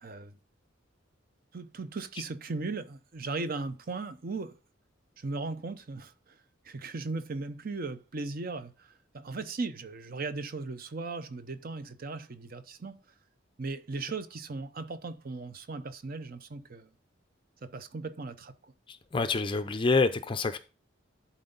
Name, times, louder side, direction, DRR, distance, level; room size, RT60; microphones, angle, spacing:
voice 1, 0.0-0.3 1.5-4.6 5.2-6.1 6.6-13.0 13.6-16.9 17.6-18.7, right 3 dB, 45° right, 0.6 m, -37 dB
voice 2, 18.9-20.6, left 3 dB, 25° left, 0.4 m, -27 dB
11.5 x 4.4 x 3.9 m
head